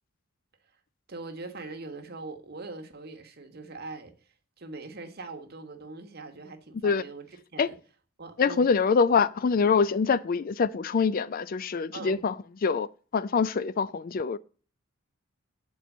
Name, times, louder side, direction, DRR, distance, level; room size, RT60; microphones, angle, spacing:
voice 1, 1.1-7.8 8.2-8.7 11.9-12.2, right 3 dB, 45° right, 1.2 m, -42 dB
voice 2, 8.4-12.4 12.6-12.9 13.1-14.4, left 5 dB, 40° left, 0.4 m, -24 dB
8.3 x 4.4 x 7.1 m
head